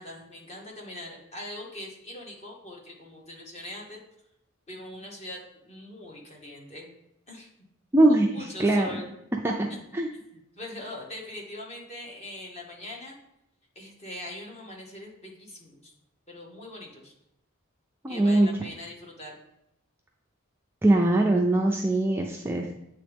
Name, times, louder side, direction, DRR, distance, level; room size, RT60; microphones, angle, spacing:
voice 1, 0.0-4.0 4.7-6.9 7.3-7.5 8.1-9.1 10.6-13.2 13.7-15.9 16.3-17.1 18.1-19.3, left 1 dB, 30° left, -1 dB, 1.1 m, -42 dB
voice 2, 7.9-8.9 9.4-9.7 9.9-10.1 18.0-18.5 20.8-22.7, right 1 dB, 10° right, 0 dB, 0.4 m, -22 dB
8.6 x 3.5 x 3.4 m, 0.83 s
head